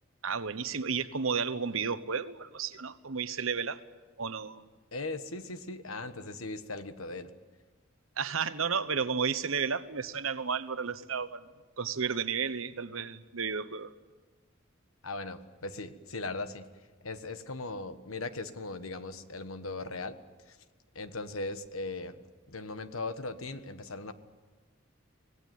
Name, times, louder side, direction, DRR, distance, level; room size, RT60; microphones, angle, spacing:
voice 1, 0.2-3.8 4.2-4.7 8.2-11.4 11.8-13.9, right 6 dB, 80° right, 12 dB, 1.1 m, -32 dB
voice 2, 4.9-7.3 15.0-16.7 17.0-20.2 20.5-20.6 20.9-22.2 22.5-24.1, left 3 dB, 90° left, 10 dB, 1.4 m, -38 dB
25.5 x 18.5 x 9.4 m, 1.3 s
head